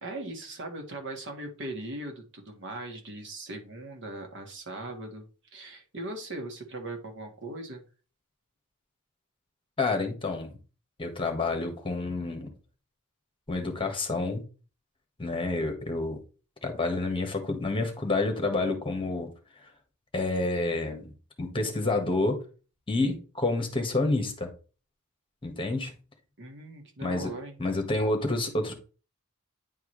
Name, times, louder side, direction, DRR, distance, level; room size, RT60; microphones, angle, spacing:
voice 1, 0.0-7.8 26.4-27.6, right 2 dB, 55° right, 1.7 m, -39 dB
voice 2, 9.8-10.5 11.0-12.5 13.5-14.4 15.2-16.2 16.6-19.3 20.1-21.1 21.4-22.4 22.9-24.5 25.4-25.9 27.0-27.3 27.6-28.7, left 2 dB, 25° left, 1.5 m, -28 dB
9.6 x 4.7 x 3.2 m
head